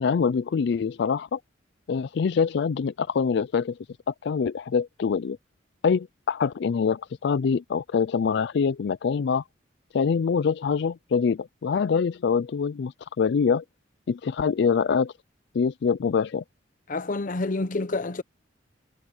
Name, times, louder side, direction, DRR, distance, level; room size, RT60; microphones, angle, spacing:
voice 1, 0.0-1.4 1.9-3.8 4.1-5.4 5.8-9.4 9.9-13.6 14.1-15.1 15.5-16.4, left 6 dB, 65° left, 0.4 m, -24 dB
voice 2, 16.9-18.2, left 2 dB, 45° left, 0.8 m, -28 dB
head